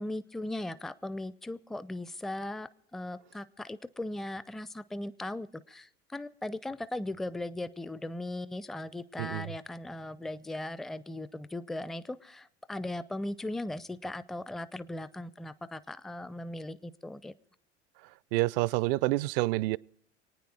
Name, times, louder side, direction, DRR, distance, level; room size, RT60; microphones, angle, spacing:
voice 1, 0.0-17.3, left 1 dB, ahead, 0.4 m, -38 dB
voice 2, 18.3-19.8, right 19 dB, 55° right, 0.5 m, -28 dB
25.5 x 9.4 x 4.7 m
figure-of-eight pair, 70°, 35 cm